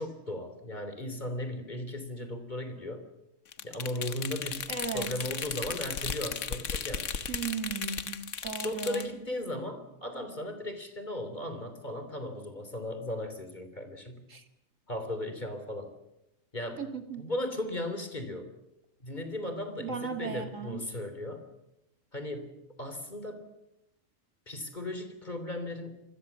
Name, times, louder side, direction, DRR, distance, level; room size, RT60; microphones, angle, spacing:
voice 1, 0.0-3.0 3.6-7.2 8.6-14.3 14.9-15.9 16.5-16.8 17.2-18.5 19.0-21.5 22.1-23.5 24.5-25.9, left 1 dB, 35° left, 8 dB, 3.5 m, -36 dB
sound 1, 3.5-9.1, left 7 dB, 65° left, 1.4 m, -36 dB
voice 2, 4.7-5.1 7.3-9.1 14.3-14.4 16.8-17.3 19.8-20.9, right 6 dB, 70° right, 6 dB, 2.5 m, -36 dB
27.5 x 21.0 x 7.2 m, 0.90 s
omnidirectional pair, 1.4 m